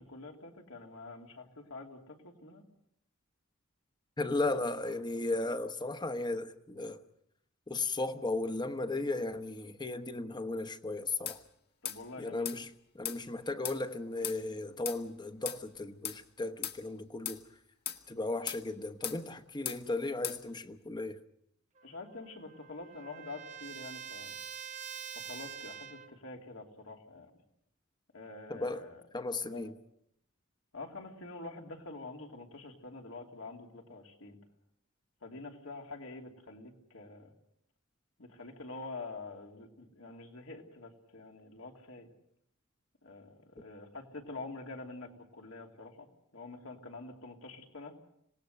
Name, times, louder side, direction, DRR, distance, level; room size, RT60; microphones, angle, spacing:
voice 1, 0.0-2.6 11.8-12.7 21.8-24.3 25.1-27.3 28.1-29.0 29.4-29.7 30.7-34.4 35.2-37.3 38.2-42.1 43.0-47.9, left 3 dB, 75° left, 3.1 m, -46 dB
voice 2, 4.2-7.0 7.7-11.4 12.2-12.7 12.9-17.4 18.1-21.2 28.5-28.8 29.1-29.7, left 2 dB, 20° left, 1.1 m, -35 dB
sound 1, 11.3-11.4 11.9-12.0 12.5-12.6 13.0-13.2 13.6-13.8 14.2-14.4 14.9-15.0 15.5-15.6 16.0-16.2 16.6-16.8 17.3-17.4 17.9-18.0 18.5-18.6 19.0-19.2 19.7-19.8 20.2-20.4, left 10 dB, 50° left, 1.4 m, -37 dB
Trumpet, 21.8-26.2, right 8 dB, 35° right, 1.0 m, -45 dB
26.5 x 18.5 x 6.6 m
head